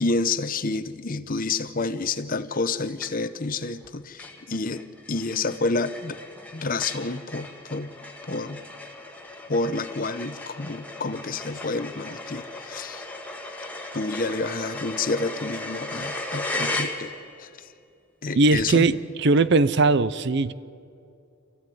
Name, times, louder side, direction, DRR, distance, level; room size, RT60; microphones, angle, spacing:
voice 1, 0.0-6.2 6.5-7.9 8.3-8.6 9.5-13.1 13.9-17.1 17.4-17.7 18.2-18.9, left 3 dB, 40° left, 12 dB, 0.8 m, -29 dB
sound 1, 3.0-3.5 3.8-3.9 4.2-17.5, left 2 dB, 5° left, 1.7 m, -36 dB
voice 2, 18.3-20.5, right 3 dB, 55° right, 16 dB, 0.6 m, -20 dB
27.0 x 15.0 x 9.3 m, 2.5 s
head